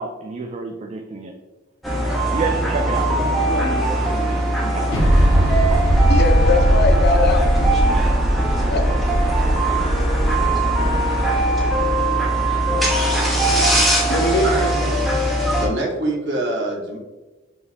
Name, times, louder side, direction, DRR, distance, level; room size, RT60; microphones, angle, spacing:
voice 1, 0.0-1.3 2.3-5.1, right 3 dB, 35° right, 3 dB, 0.3 m, -29 dB
sound 1, 1.8-15.7, right 1 dB, ahead, 0.7 m, -20 dB
sound 2, 4.9-12.4, equal, 75° left, 1.2 m, -19 dB
voice 2, 6.1-7.8 8.7-8.8 14.1-14.9, left 2 dB, 55° left, 4 dB, 0.6 m, -22 dB
voice 3, 15.2-17.0, right 1 dB, 60° right, -2 dB, 1.1 m, -25 dB
4.5 x 2.6 x 3.3 m, 1.1 s
head